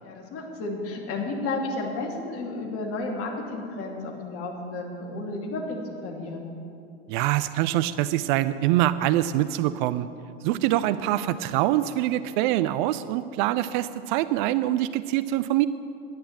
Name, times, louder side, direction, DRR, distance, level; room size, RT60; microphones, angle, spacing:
voice 1, 0.0-6.5 11.1-11.3, left 2 dB, 45° left, 0 dB, 2.7 m, -32 dB
voice 2, 7.1-10.1 10.4-15.7, right 14 dB, 50° right, 14 dB, 0.5 m, -24 dB
10.5 x 10.0 x 7.5 m, 2.7 s
figure-of-eight pair, 80°, 33 cm